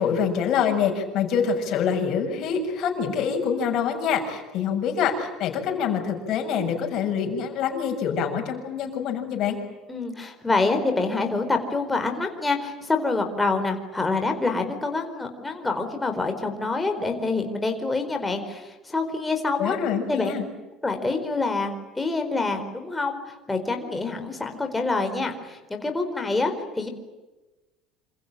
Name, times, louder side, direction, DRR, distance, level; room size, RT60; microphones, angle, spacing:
voice 1, 0.0-9.6 19.6-20.4, left 7 dB, 45° left, 4 dB, 6.9 m, -25 dB
voice 2, 9.9-19.8 20.1-20.3 20.8-26.9, left 3 dB, 10° left, 4 dB, 4.4 m, -26 dB
27.5 x 27.0 x 7.5 m, 1.1 s
cardioid pair, 165°, 0 cm